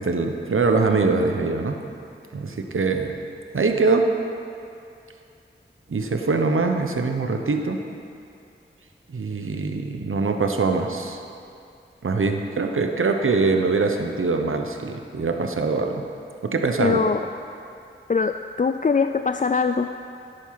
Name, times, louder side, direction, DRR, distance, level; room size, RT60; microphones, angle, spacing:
voice 1, 0.0-1.8 2.3-3.1 3.5-4.1 5.9-7.8 9.1-11.2 12.0-16.0 16.4-17.0, right 3 dB, 90° right, 4 dB, 1.0 m, -23 dB
voice 2, 16.8-17.2 18.1-19.9, left 5 dB, 40° left, 8 dB, 0.4 m, -22 dB
14.5 x 8.2 x 5.9 m, 2.5 s
wide cardioid pair, 65°, 20 cm